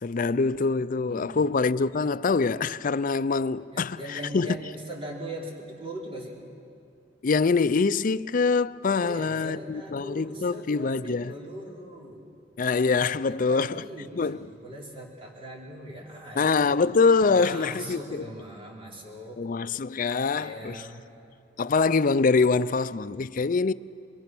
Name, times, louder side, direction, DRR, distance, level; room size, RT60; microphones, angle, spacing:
voice 1, 0.0-4.0 4.3-4.6 7.2-11.3 12.6-13.8 14.2-14.4 16.4-18.2 19.4-20.8 21.6-23.7, left 4 dB, 45° left, 0.5 m, -24 dB
voice 2, 1.1-1.5 3.7-6.4 9.0-12.3 13.2-16.8 17.2-19.4 20.3-21.0, right 1 dB, 30° right, 3.9 m, -40 dB
27.0 x 22.5 x 6.1 m
head